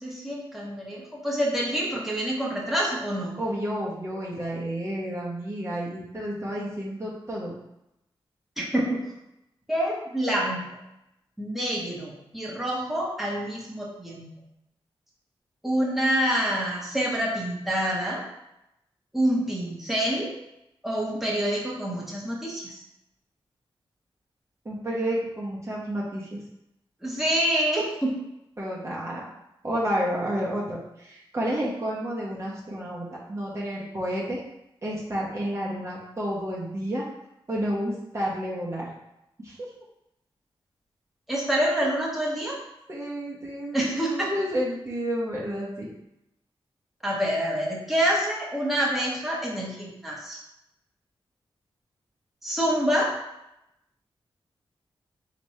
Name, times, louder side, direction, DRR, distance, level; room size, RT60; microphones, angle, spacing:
voice 1, 0.0-3.3 8.6-9.0 9.7-10.6 11.4-14.3 15.6-18.2 19.1-20.3 20.8-22.8 27.0-28.2 41.3-42.6 43.7-44.3 47.0-50.4 52.4-53.1, equal, ahead, -4 dB, 1.2 m, -27 dB
voice 2, 3.4-7.5 24.6-26.4 28.6-29.2 29.6-34.4 34.8-37.0 37.5-38.9 39.4-39.6 42.9-45.9, equal, 30° right, -5 dB, 1.0 m, -30 dB
3.4 x 3.0 x 4.3 m, 0.86 s
cardioid pair, 60°, 10 cm